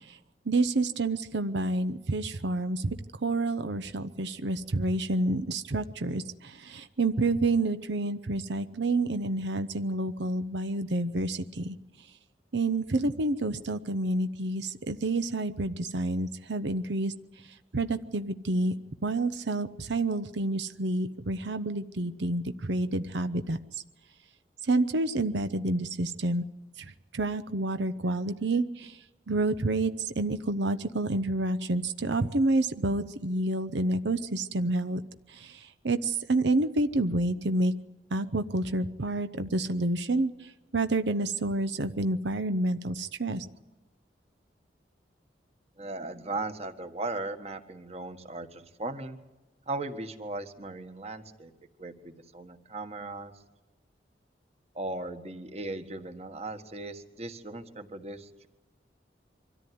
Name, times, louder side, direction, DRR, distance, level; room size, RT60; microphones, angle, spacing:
voice 1, 0.5-11.8 12.5-17.1 17.7-18.7 19.0-23.6 24.7-26.4 27.1-28.9 29.3-35.0 35.8-37.7 38.1-40.3 40.7-43.4, right 2 dB, 85° right, 10 dB, 0.8 m, -28 dB
voice 2, 45.8-49.2 49.7-51.5 51.8-53.3 54.7-58.5, right 2 dB, 35° right, 8 dB, 1.6 m, -37 dB
24.5 x 14.0 x 9.5 m, 1.1 s
head